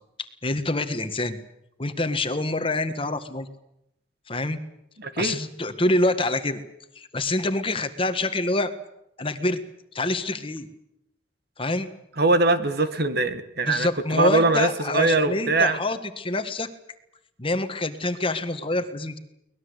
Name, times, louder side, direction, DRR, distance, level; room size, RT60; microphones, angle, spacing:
voice 1, 0.4-1.4 1.8-3.5 4.3-4.6 5.2-6.6 6.9-8.7 9.2-9.6 9.9-10.7 11.6-11.9 13.6-16.7 17.4-19.2, left 2 dB, 25° left, 9 dB, 1.7 m, -26 dB
voice 2, 5.0-5.4 12.2-15.8, right 3 dB, 55° right, 11 dB, 1.8 m, -22 dB
23.5 x 20.0 x 8.2 m, 0.81 s
head